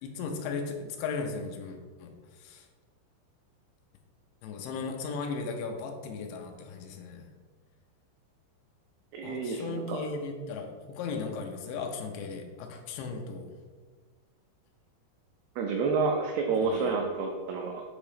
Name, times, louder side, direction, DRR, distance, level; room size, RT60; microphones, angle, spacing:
voice 1, 0.0-2.1 2.4-2.7 4.4-7.2 9.2-13.5 16.6-16.9, left 4 dB, 80° left, 3 dB, 2.9 m, -36 dB
voice 2, 9.1-10.0 15.6-17.8, right 4 dB, 90° right, 1 dB, 2.2 m, -29 dB
8.3 x 3.0 x 4.9 m, 1.5 s
omnidirectional pair, 5.2 m